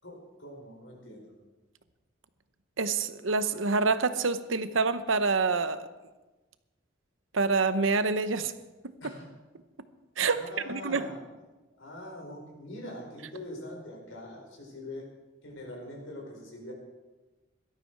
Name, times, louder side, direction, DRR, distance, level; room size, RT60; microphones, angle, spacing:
voice 1, 0.0-1.3 9.0-9.3 10.3-11.2 11.7-15.1 15.4-16.7, left 1 dB, 90° left, 0 dB, 4.9 m, -43 dB
voice 2, 2.8-5.9 7.3-8.5 10.2-11.1, right 4 dB, 85° right, 12 dB, 0.9 m, -27 dB
17.5 x 12.5 x 4.7 m, 1.2 s
head